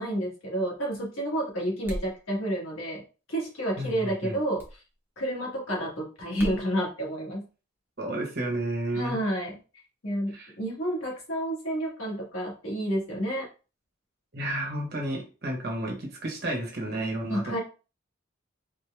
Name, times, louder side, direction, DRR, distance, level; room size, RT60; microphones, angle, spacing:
voice 1, 0.0-3.0 3.3-4.6 5.2-7.4 8.9-9.5 10.0-13.5 17.3-17.6, right 1 dB, 85° left, -2 dB, 1.5 m, -30 dB
sound 1, 1.8-2.2 4.6-4.8 6.4-6.6, equal, 10° right, 0.7 m, -36 dB
voice 2, 3.8-4.4 8.0-9.2 10.3-10.5 14.3-17.6, right 1 dB, 50° right, 0 dB, 1.3 m, -32 dB
4.2 x 2.2 x 3.4 m, 0.33 s
head